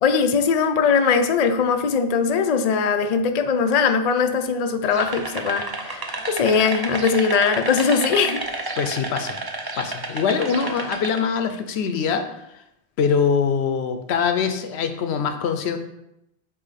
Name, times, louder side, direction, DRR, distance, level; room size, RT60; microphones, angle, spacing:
voice 1, 0.0-8.4, left 5 dB, 50° left, 6 dB, 0.5 m, -20 dB
sound 1, 4.9-11.2, right 2 dB, 30° right, 0.4 m, -31 dB
voice 2, 8.8-9.4 9.8-12.3 13.0-15.8, left 6 dB, 75° left, 8 dB, 0.9 m, -23 dB
8.3 x 2.8 x 4.1 m, 0.84 s
omnidirectional pair, 1.1 m